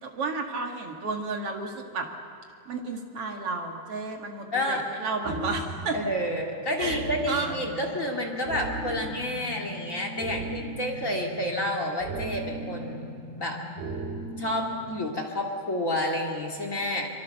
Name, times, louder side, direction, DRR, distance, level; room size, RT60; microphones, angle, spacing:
voice 1, 0.0-2.1 2.7-6.0 6.8-7.0 7.3-7.6, right 4 dB, 45° right, 2 dB, 2.4 m, -32 dB
voice 2, 4.5-4.8 5.9-13.1 13.4-13.6 14.4-17.1, left 1 dB, 25° left, 2 dB, 2.1 m, -29 dB
sound 1, 5.2-15.2, right 1 dB, 70° right, 4.1 m, -37 dB
25.0 x 24.0 x 6.7 m, 2.5 s
omnidirectional pair, 4.5 m